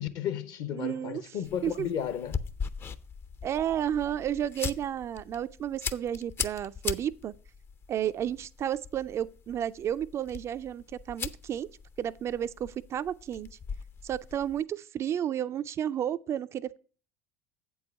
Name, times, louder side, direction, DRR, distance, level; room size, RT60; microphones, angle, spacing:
voice 1, 0.0-2.4, left 9 dB, 55° left, 0.9 m, -33 dB
voice 2, 0.7-1.2 1.6-1.9 3.4-7.3 7.9-11.7 12.0-13.5 14.0-16.8, right 10 dB, 35° right, 0.3 m, -32 dB
sound 1, 1.4-14.6, left 6 dB, 30° left, 0.5 m, -40 dB
8.1 x 4.7 x 6.4 m
hypercardioid pair, 70°, 8 cm